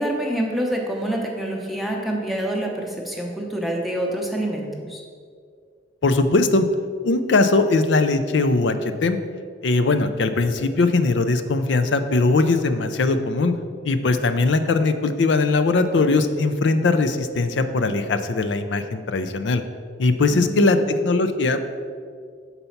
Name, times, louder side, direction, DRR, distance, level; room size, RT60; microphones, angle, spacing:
voice 1, 0.0-5.0 20.3-20.9, right 1 dB, ahead, -1 dB, 0.7 m, -26 dB
voice 2, 6.0-6.7 7.0-9.2 9.6-13.5 13.8-19.6 20.0-21.7, left 3 dB, 75° left, 9 dB, 0.5 m, -20 dB
6.8 x 4.1 x 5.7 m, 2.1 s
head